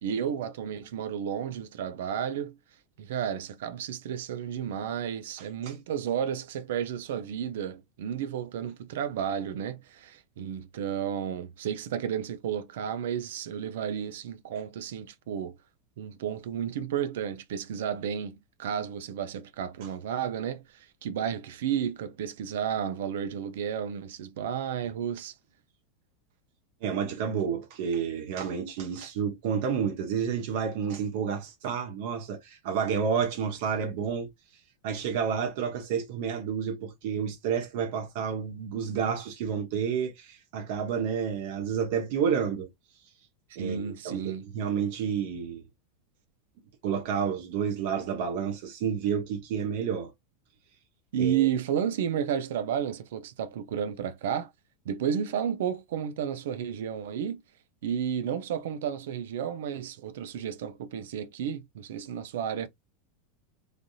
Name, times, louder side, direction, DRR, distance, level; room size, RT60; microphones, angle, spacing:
voice 1, 0.0-2.6 3.0-15.6 16.0-25.3 43.6-44.5 51.1-54.5 54.8-57.4 57.8-62.7, right 8 dB, 75° right, 0.5 m, -32 dB
voice 2, 26.8-34.3 34.8-42.7 43.6-45.6 46.8-50.1 51.2-51.5, right 7 dB, 55° right, 0.9 m, -30 dB
3.3 x 2.7 x 2.3 m
supercardioid pair, 170°, 0 cm